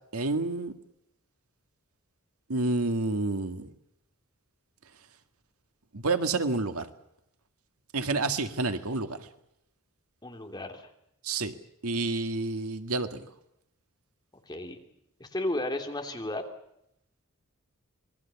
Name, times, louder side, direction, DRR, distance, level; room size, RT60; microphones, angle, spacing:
voice 1, 0.1-0.7 2.5-3.7 5.9-6.9 7.9-9.2 11.2-11.5 11.8-13.3, right 3 dB, 85° right, 9 dB, 1.8 m, -29 dB
voice 2, 10.2-10.9 14.5-14.8 15.2-16.4, left 1 dB, 20° left, 4 dB, 3.1 m, -33 dB
26.5 x 21.0 x 7.1 m, 0.80 s
head